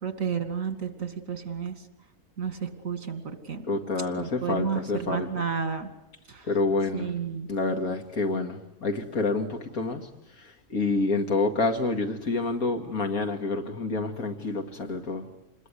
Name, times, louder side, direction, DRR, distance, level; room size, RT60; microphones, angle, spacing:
voice 1, 0.0-1.8 2.4-3.6 4.1-5.9 6.3-6.5 6.9-7.5, right 7 dB, 65° right, 8 dB, 2.7 m, -31 dB
voice 2, 3.7-5.4 6.5-7.2 7.5-10.1 10.7-15.3, left 3 dB, 90° left, 5 dB, 2.7 m, -28 dB
27.5 x 21.0 x 9.9 m, 0.90 s
omnidirectional pair, 1.5 m